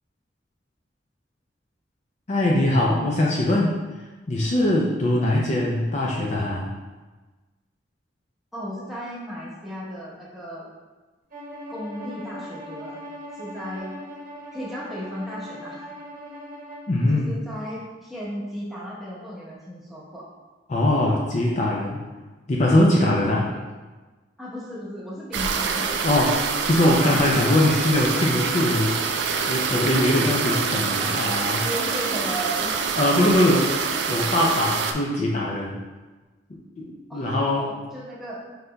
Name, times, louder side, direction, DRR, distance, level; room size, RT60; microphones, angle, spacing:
voice 1, 2.3-3.7 4.3-6.7 16.9-17.3 20.7-22.0 22.5-23.4 26.0-26.3 26.6-31.6 33.0-35.8 36.8-37.7, left 1 dB, 40° left, -3 dB, 0.4 m, -22 dB
voice 2, 8.5-10.7 11.7-13.0 13.3-14.0 14.5-15.8 17.1-20.2 22.9-23.7 24.4-25.9 30.0-31.2 31.6-32.7 37.1-38.4, equal, ahead, -8 dB, 1.0 m, -35 dB
Bowed string instrument, 11.3-16.9, equal, 45° right, 0.9 m, -39 dB
sound 1, 25.3-34.9, right 5 dB, 75° right, 0.4 m, -26 dB
5.1 x 4.0 x 2.2 m, 1.3 s
head